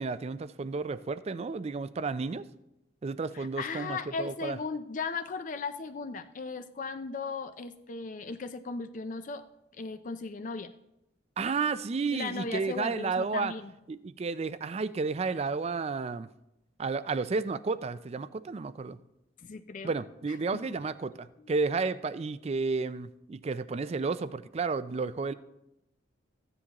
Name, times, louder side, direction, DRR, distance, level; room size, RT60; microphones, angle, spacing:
voice 1, 0.0-2.5 3.0-4.6 11.4-13.5 13.9-16.3 16.8-19.0 19.8-25.3, right 4 dB, 35° right, 15 dB, 0.4 m, -32 dB
voice 2, 3.3-9.4 9.7-10.7 12.1-13.7 19.4-19.9 20.3-20.4 20.7-20.8 21.4-21.5, left 4 dB, 45° left, 10 dB, 0.4 m, -37 dB
14.0 x 9.7 x 2.9 m, 0.86 s
head